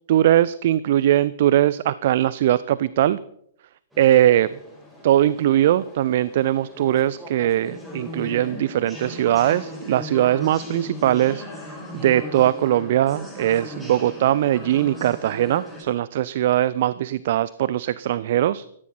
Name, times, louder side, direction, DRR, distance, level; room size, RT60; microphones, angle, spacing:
voice 1, 0.1-3.2 4.0-4.5 5.0-11.4 11.9-18.7, right 12 dB, 50° right, 18 dB, 0.5 m, -20 dB
sound 1, 3.9-15.8, left 1 dB, 5° right, 6.0 m, -38 dB
17.5 x 14.0 x 4.3 m, 0.69 s
figure-of-eight pair, 110°, 0 cm